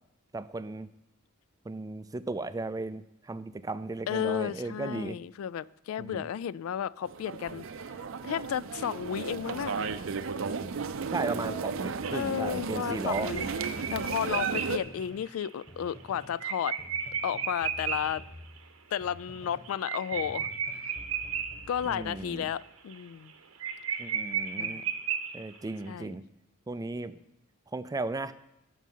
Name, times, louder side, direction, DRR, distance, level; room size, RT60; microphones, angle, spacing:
voice 1, 0.3-0.9 1.7-5.2 6.0-6.3 11.1-13.3 21.9-22.5 24.0-24.8 25.3-26.2 26.7-27.2 27.7-28.3, right 3 dB, 15° right, 13 dB, 0.3 m, -35 dB
voice 2, 4.1-7.7 8.2-9.9 12.1-13.5 13.9-16.8 17.2-18.2 18.9-20.5 21.7-23.3 24.6-24.8 25.9-26.1, left 9 dB, 75° left, 20 dB, 0.3 m, -33 dB
sound 1, 7.1-14.8, right 5 dB, 70° right, 0.5 m, -34 dB
sound 2, 12.0-18.2 18.6-18.7 18.9-19.0 19.3-21.9 22.3-22.6 22.9-23.0 23.3-23.4 23.6-25.7, right 7 dB, 90° right, 1.0 m, -34 dB
sound 3, 13.2-15.3 15.7-16.4 16.8-19.8 20.1-22.5, equal, 30° left, 1.9 m, -50 dB
13.5 x 5.5 x 5.5 m, 0.89 s
head